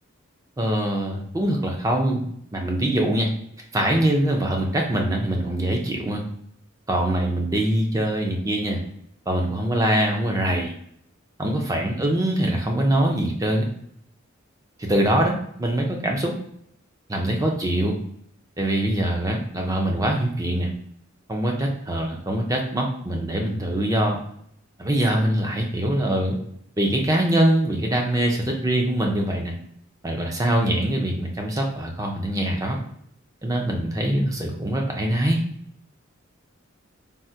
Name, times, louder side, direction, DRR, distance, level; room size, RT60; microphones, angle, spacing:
voice 1, 0.6-2.2 2.5-3.3 3.7-6.2 6.9-8.8 9.3-10.7 11.4-13.7 14.8-16.3 17.1-17.9 18.6-20.7 21.3-24.2 24.8-26.4 26.8-29.5 30.0-32.8 33.4-35.4, right 1 dB, 15° right, 1 dB, 0.5 m, -23 dB
3.5 x 2.1 x 2.7 m, 0.69 s
head